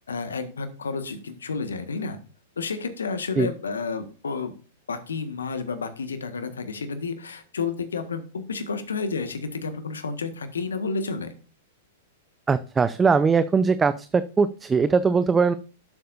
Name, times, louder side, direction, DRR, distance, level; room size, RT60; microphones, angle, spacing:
voice 1, 0.0-2.2 2.6-4.5 4.9-11.3, left 4 dB, 75° left, 9 dB, 1.6 m, -31 dB
voice 2, 12.5-15.5, right 5 dB, 15° right, 14 dB, 0.5 m, -21 dB
11.5 x 7.8 x 2.6 m, 0.37 s
figure-of-eight pair, 105°, 0 cm